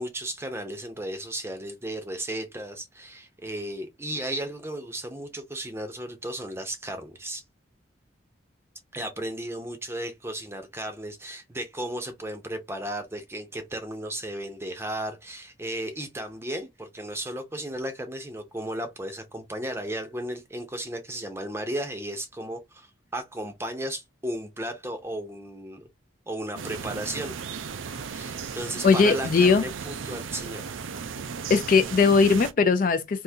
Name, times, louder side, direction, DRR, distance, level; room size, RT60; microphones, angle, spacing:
voice 1, 0.0-7.4 8.9-25.9 26.3-27.3 28.1-30.6, right 1 dB, 10° right, 0.6 m, -34 dB
sound 1, 26.6-32.5, right 6 dB, 80° right, 0.5 m, -36 dB
voice 2, 28.8-29.6 31.5-33.2, left 4 dB, 40° left, 0.3 m, -19 dB
3.5 x 2.7 x 2.7 m
head